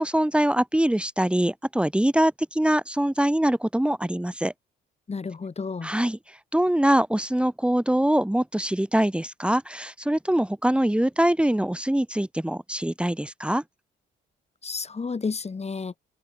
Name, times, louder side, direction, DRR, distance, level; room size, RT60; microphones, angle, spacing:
voice 1, 0.0-4.5 5.8-13.6, right 1 dB, 5° right, 3.4 m, -23 dB
voice 2, 5.1-5.9 14.6-16.0, left 4 dB, 30° left, 6.3 m, -31 dB
open air
cardioid pair, 90°, 20 cm